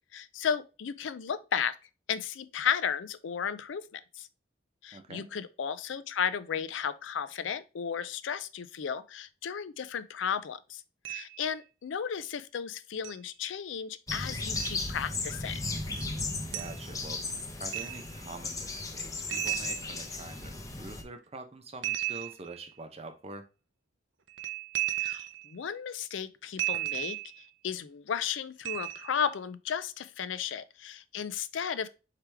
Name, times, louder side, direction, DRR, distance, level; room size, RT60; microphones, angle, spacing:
voice 1, 0.1-1.8 2.1-4.3 4.8-10.8 11.1-15.6 25.0-27.2 27.6-31.9, left 7 dB, 90° left, 0.4 m, -34 dB
voice 2, 4.9-5.3 16.5-17.2 17.6-23.4, right 2 dB, 35° right, 0.8 m, -45 dB
sound 1, 11.0-11.4 13.0-13.1 14.6-14.8 15.9-16.1 16.5-16.8 17.7-18.2 19.3-20.4 21.8-22.7 24.3-25.5 26.6-27.4 28.6-29.2, right 17 dB, 80° right, 0.5 m, -34 dB
sound 2, 14.1-21.0, left 3 dB, 20° left, 0.7 m, -36 dB
4.7 x 3.3 x 3.3 m
head